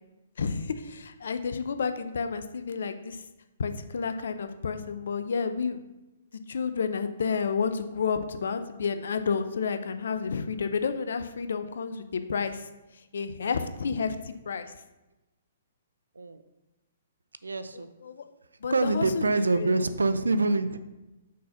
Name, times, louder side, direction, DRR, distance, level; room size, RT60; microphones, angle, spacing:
voice 1, 0.4-3.2 3.6-6.0 6.5-12.7 13.1-14.7 17.7-18.2 18.6-19.8, left 5 dB, 70° left, 9 dB, 0.6 m, -31 dB
voice 2, 17.4-17.9 18.7-20.8, right 3 dB, 85° right, 12 dB, 0.5 m, -25 dB
6.2 x 4.3 x 5.6 m, 1.0 s
hypercardioid pair, 125°, 0 cm